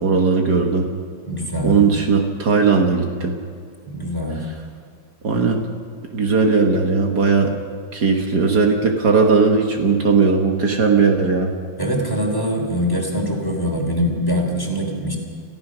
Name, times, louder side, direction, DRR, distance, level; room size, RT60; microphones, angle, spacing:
voice 1, 0.0-0.9 1.6-3.4 5.2-5.6 6.1-7.5 7.9-11.5, right 4 dB, 60° right, 3 dB, 2.0 m, -17 dB
voice 2, 1.3-1.8 3.9-4.5 11.8-15.2, equal, 10° left, 2 dB, 3.1 m, -23 dB
28.5 x 14.5 x 6.2 m, 2.2 s
omnidirectional pair, 2.0 m